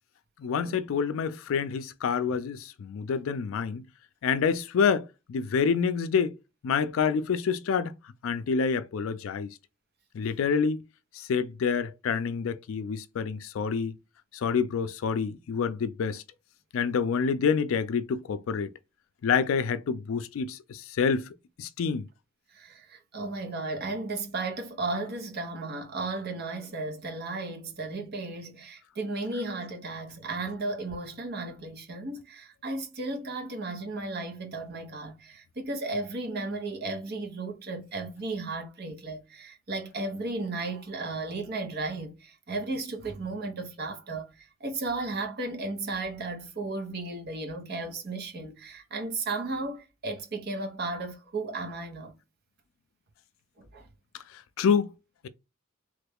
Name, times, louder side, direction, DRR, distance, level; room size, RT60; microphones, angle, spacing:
voice 1, 0.4-3.8 4.2-6.3 6.6-8.0 8.2-9.6 10.1-10.8 11.1-14.0 14.3-16.2 16.7-18.7 19.2-21.3 21.6-22.1 54.3-54.9, left 6 dB, 75° left, 0.3 m, -27 dB
voice 2, 22.5-52.1 53.6-53.9, right 2 dB, 50° right, 0.8 m, -34 dB
3.2 x 2.3 x 3.4 m
head